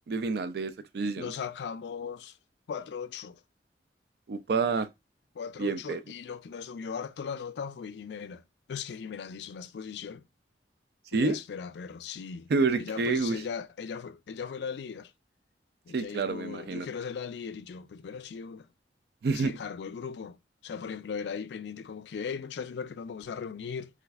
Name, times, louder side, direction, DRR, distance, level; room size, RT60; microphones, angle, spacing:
voice 1, 0.1-1.3 4.3-4.9 5.6-6.0 11.1-11.4 12.5-13.4 15.9-16.9 19.2-19.6, right 4 dB, 60° right, 0.4 m, -28 dB
voice 2, 1.2-2.4 2.7-3.4 5.3-8.4 8.7-10.2 11.1-12.5 12.8-15.1 15.9-18.7 19.3-20.4 20.6-23.9, left 6 dB, 70° left, 0.3 m, -38 dB
4.1 x 2.4 x 2.3 m
head